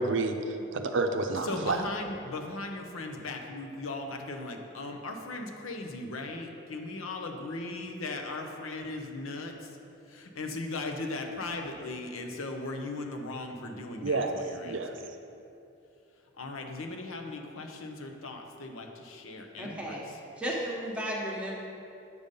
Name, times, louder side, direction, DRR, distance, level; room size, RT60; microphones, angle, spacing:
voice 1, 0.0-1.8 14.0-14.4 14.6-14.9, right 3 dB, 65° right, 6 dB, 0.5 m, -29 dB
voice 2, 1.4-9.7 10.1-14.8 16.4-20.0, left 2 dB, 90° left, 3 dB, 0.8 m, -38 dB
voice 3, 19.6-21.5, equal, 5° right, -4 dB, 1.1 m, -34 dB
7.9 x 5.5 x 5.3 m, 2.7 s
head